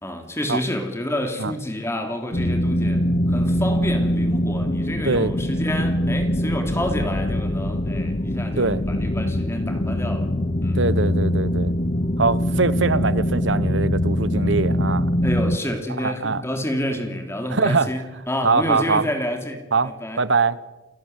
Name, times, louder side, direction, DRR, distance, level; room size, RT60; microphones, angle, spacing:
voice 1, 0.0-10.3 10.6-10.8 15.2-20.2, left 1 dB, 15° left, 3.0 m, -29 dB
sound 1, 2.3-15.6, left 1 dB, 35° left, 1.1 m, -23 dB
voice 2, 10.7-11.7 12.2-15.1 16.0-16.4 17.5-17.9 18.4-19.0 19.7-20.6, right 4 dB, 65° right, 1.1 m, -22 dB
28.5 x 18.0 x 8.0 m
head